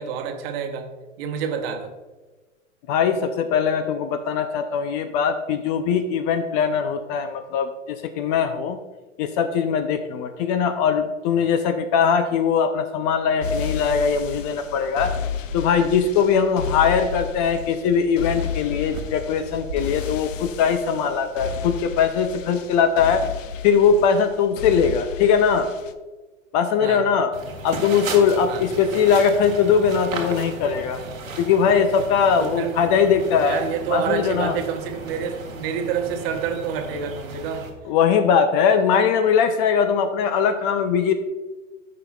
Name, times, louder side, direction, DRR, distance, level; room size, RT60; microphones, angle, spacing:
voice 1, 0.0-1.9 26.8-27.1 28.5-28.7 32.4-32.8 33.4-37.7, right 7 dB, 50° right, 5 dB, 1.2 m, -28 dB
voice 2, 2.9-8.8 9.2-15.1 15.5-23.2 23.6-25.7 26.5-27.3 27.6-31.0 31.4-33.6 33.9-34.5 37.9-41.1, left 6 dB, 30° left, 9 dB, 0.5 m, -20 dB
sound 1, 13.4-25.9, left 6 dB, 75° left, 0.7 m, -32 dB
sound 2, 18.9-21.2, right 2 dB, 70° right, 1.3 m, -38 dB
sound 3, 27.3-37.7, right 3 dB, 90° right, 1.5 m, -35 dB
13.0 x 5.6 x 2.3 m, 1.2 s
hypercardioid pair, 110°, 39 cm